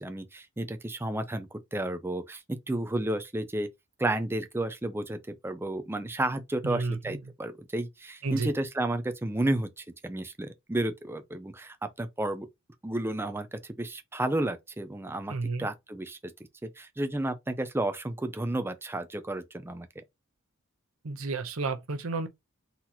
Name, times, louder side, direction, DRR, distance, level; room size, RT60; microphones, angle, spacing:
voice 1, 0.0-3.7 4.0-12.5 12.8-16.2 16.8-19.9, right 1 dB, 10° right, 0.5 m, -32 dB
voice 2, 6.6-7.2 8.2-8.5 15.3-15.7 21.0-22.3, right 3 dB, 80° right, 0.8 m, -31 dB
4.0 x 2.9 x 4.1 m
head